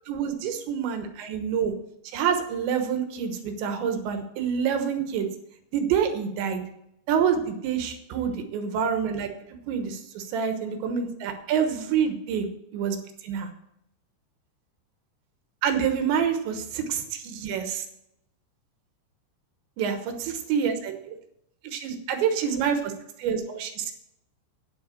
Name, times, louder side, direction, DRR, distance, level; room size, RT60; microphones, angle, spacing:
voice 1, 0.1-1.7 2.1-5.3 5.7-6.6 7.1-9.3 9.7-12.5 12.7-13.0 13.2-13.5 15.6-17.9 19.8-21.1 21.6-22.9 23.2-23.9, right 7 dB, 75° right, 6 dB, 3.4 m, -27 dB
9.5 x 7.6 x 7.6 m, 0.80 s
omnidirectional pair, 5.3 m